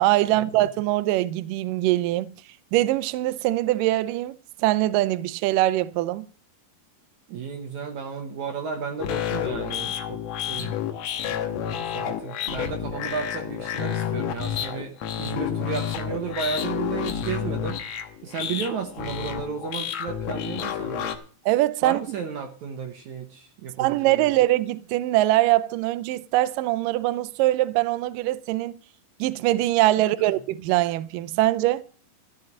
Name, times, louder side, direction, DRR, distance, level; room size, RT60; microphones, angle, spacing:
voice 1, 0.0-2.4 2.7-6.3 21.5-22.0 23.8-28.8 29.2-31.8, right 16 dB, 90° right, 1.9 m, -23 dB
voice 2, 7.3-10.7 11.2-14.9 15.2-17.8 18.2-21.2 21.8-24.3, right 5 dB, 65° right, 2.0 m, -33 dB
sound 1, 9.0-21.2, left 9 dB, 70° left, 1.7 m, -30 dB
14.0 x 6.5 x 7.3 m
omnidirectional pair, 4.7 m